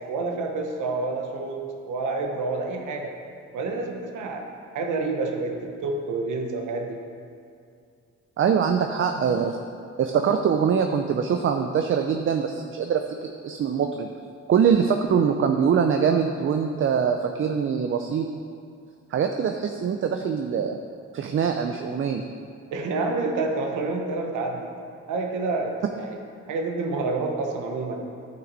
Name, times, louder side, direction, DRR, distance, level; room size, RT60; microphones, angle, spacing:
voice 1, 0.1-3.1 3.5-4.4 4.7-7.0 8.7-9.2 22.7-24.7 25.1-26.2 26.5-28.0, right 3 dB, 80° right, 2 dB, 1.0 m, -28 dB
voice 2, 8.4-9.6 10.0-14.1 14.5-18.3 19.1-20.8 21.1-22.2, right 7 dB, 45° right, 5 dB, 0.5 m, -23 dB
10.5 x 5.9 x 4.0 m, 2.4 s
cardioid pair, 90°, 30 cm